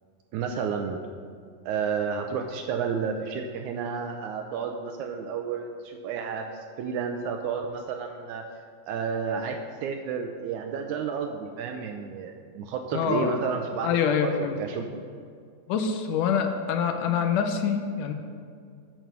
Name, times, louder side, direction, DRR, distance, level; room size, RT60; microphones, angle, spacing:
voice 1, 0.3-1.0 1.7-6.5 6.8-8.4 8.9-15.0, right 6 dB, 80° right, 4 dB, 1.8 m, -31 dB
voice 2, 12.9-13.4 13.8-14.5 15.7-18.1, left 7 dB, 80° left, 5 dB, 2.2 m, -25 dB
9.2 x 6.2 x 6.7 m, 2.2 s
omnidirectional pair, 3.9 m